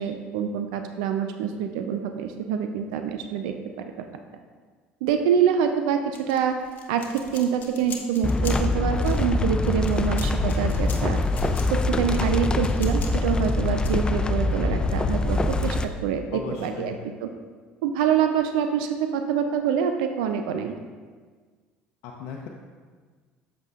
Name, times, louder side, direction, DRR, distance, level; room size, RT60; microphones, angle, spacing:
voice 1, 0.0-3.9 5.0-6.5 6.9-11.2 11.7-17.3 17.8-20.7, right 7 dB, 90° right, 6 dB, 0.4 m, -26 dB
sound 1, 6.1-13.9, left 6 dB, 45° left, 1.1 m, -42 dB
sound 2, 8.2-15.8, left 2 dB, 20° left, 0.4 m, -24 dB
voice 2, 16.3-16.9 22.0-22.5, left 6 dB, 75° left, -1 dB, 0.6 m, -36 dB
7.7 x 6.6 x 2.4 m, 1.5 s
supercardioid pair, 90°, 4 cm